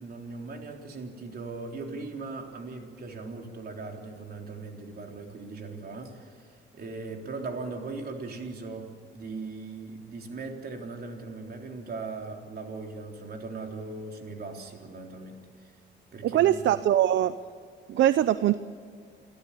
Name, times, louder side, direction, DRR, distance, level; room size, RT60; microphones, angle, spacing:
voice 1, 0.0-15.7 16.1-16.8, right 3 dB, 50° right, 2 dB, 3.7 m, -39 dB
voice 2, 16.2-17.3 17.9-18.6, right 12 dB, 70° right, 14 dB, 0.7 m, -22 dB
29.0 x 13.0 x 8.6 m, 2.2 s
cardioid pair, 90°, 20 cm